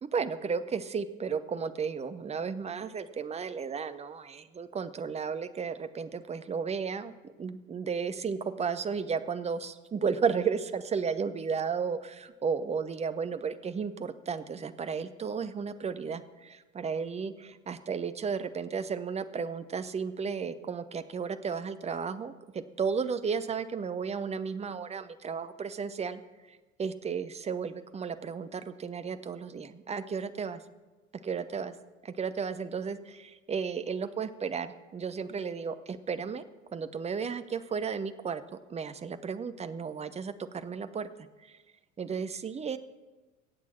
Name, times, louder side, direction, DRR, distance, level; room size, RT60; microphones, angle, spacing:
voice 1, 0.1-7.1 7.4-26.2 26.5-30.6 31.2-31.7 32.0-36.4 36.7-41.1 41.4-41.6 42.0-42.8, right 6 dB, 15° right, 11 dB, 0.8 m, -34 dB
23.0 x 8.6 x 4.3 m, 1.2 s
figure-of-eight pair, 70°, 39 cm